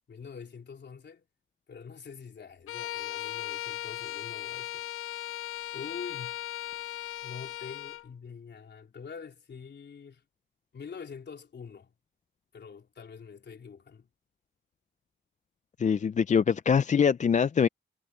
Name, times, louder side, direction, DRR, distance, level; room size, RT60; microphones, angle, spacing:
voice 1, 0.1-1.3 1.7-4.9 5.7-6.4 7.2-10.2 10.7-11.9 12.5-14.1, left 6 dB, 55° left, 3.7 m, -45 dB
Bowed string instrument, 2.7-8.1, left 14 dB, 85° left, 0.5 m, -37 dB
voice 2, 15.8-17.7, left 7 dB, 35° left, 0.4 m, -23 dB
cardioid pair, 95°, 21 cm